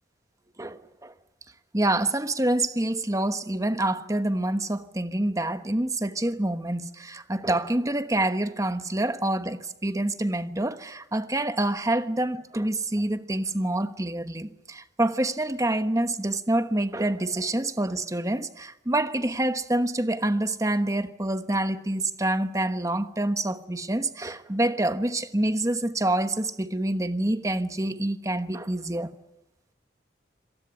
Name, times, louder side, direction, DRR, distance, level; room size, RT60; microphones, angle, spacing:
voice 1, 0.6-1.1 1.7-29.1, right 1 dB, 15° right, 1.2 m, -27 dB
26.0 x 19.0 x 9.8 m
head